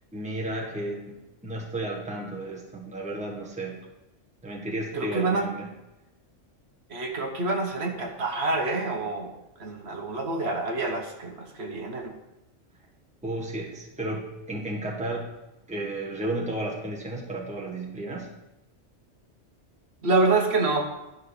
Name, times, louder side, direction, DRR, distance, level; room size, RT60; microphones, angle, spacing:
voice 1, 0.1-1.2 1.4-3.8 4.4-5.7 13.2-15.3 15.7-18.3, right 1 dB, 5° right, -2 dB, 1.3 m, -33 dB
voice 2, 4.9-5.5 6.9-9.3 9.6-12.1 20.0-20.9, right 3 dB, 60° right, 2 dB, 1.4 m, -27 dB
11.5 x 5.1 x 4.8 m, 0.97 s
omnidirectional pair, 1.3 m